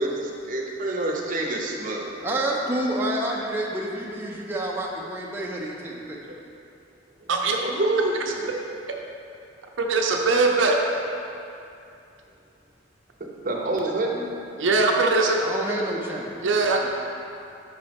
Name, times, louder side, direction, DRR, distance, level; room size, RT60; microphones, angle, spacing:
voice 1, 0.0-2.2 7.2-7.3 7.6-8.5 13.4-14.3, right 2 dB, 45° right, -1 dB, 0.7 m, -27 dB
voice 2, 2.2-6.2 15.4-16.4 16.8-16.9, right 1 dB, 10° right, -3 dB, 0.5 m, -28 dB
voice 3, 9.8-10.8 14.6-15.4 16.4-16.8, right 3 dB, 80° right, 1 dB, 0.6 m, -21 dB
5.6 x 4.1 x 5.1 m, 2.6 s
head